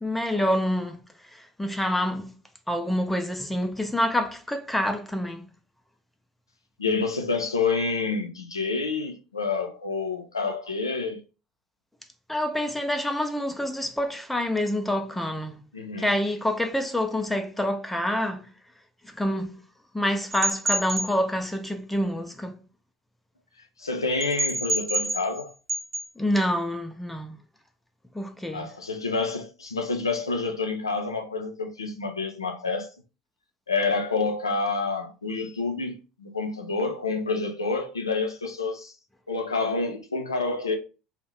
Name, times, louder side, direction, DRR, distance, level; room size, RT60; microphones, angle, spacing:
voice 1, 0.0-2.3 2.7-5.5 12.3-15.6 16.0-18.5 19.0-19.6 19.9-22.6 26.2-27.3 28.1-28.7, left 1 dB, 5° left, 0.3 m, -27 dB
voice 2, 6.8-11.2 15.7-16.1 23.8-25.5 28.5-32.9 33.7-38.9 39.3-40.8, left 4 dB, 90° left, 0.4 m, -28 dB
sound 1, 20.3-21.1 24.2-25.4 25.7-26.0, right 1 dB, 85° right, 0.4 m, -27 dB
2.5 x 2.0 x 3.0 m
figure-of-eight pair, 70°, 2 cm